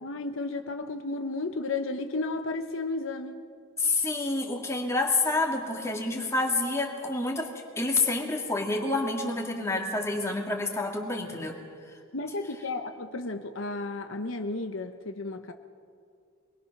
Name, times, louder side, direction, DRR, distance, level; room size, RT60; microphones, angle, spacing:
voice 1, 0.0-3.4 12.1-15.5, left 3 dB, 70° left, 6 dB, 1.0 m, -33 dB
voice 2, 3.8-7.5 7.8-11.5, left 2 dB, 15° left, 0 dB, 2.1 m, -28 dB
24.0 x 20.5 x 6.0 m, 2.2 s
head